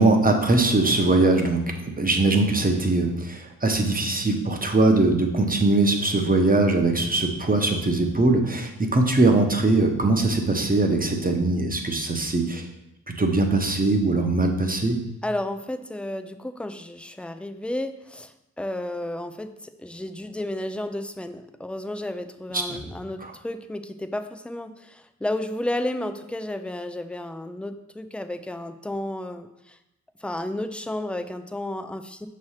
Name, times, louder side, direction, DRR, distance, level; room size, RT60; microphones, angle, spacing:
voice 1, 0.0-12.7 13.2-15.0 22.5-22.8 23.2-23.3, right 2 dB, 25° right, 4 dB, 1.1 m, -21 dB
voice 2, 15.2-29.8 30.2-32.3, left 1 dB, 5° left, 9 dB, 0.5 m, -32 dB
6.1 x 3.2 x 5.6 m, 0.89 s
cardioid pair, 60°, 36 cm